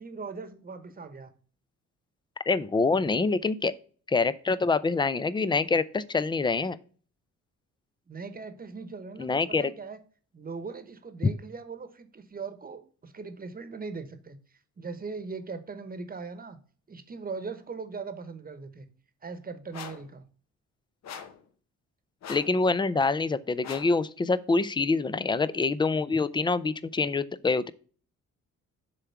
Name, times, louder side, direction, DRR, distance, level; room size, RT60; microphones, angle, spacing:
voice 1, 0.0-1.3 8.1-10.0 10.3-16.6 16.9-18.9 19.2-20.2, right 4 dB, 30° right, 10 dB, 1.1 m, -40 dB
voice 2, 2.5-3.7 4.1-6.8 9.2-9.7 22.3-27.7, left 4 dB, 15° left, 17 dB, 0.4 m, -26 dB
sound 1, 19.7-20.1 21.0-21.4 22.2-22.6 23.6-24.0, left 7 dB, 60° left, 1.0 m, -41 dB
6.9 x 3.6 x 5.7 m, 0.42 s
cardioid pair, 90°, 30 cm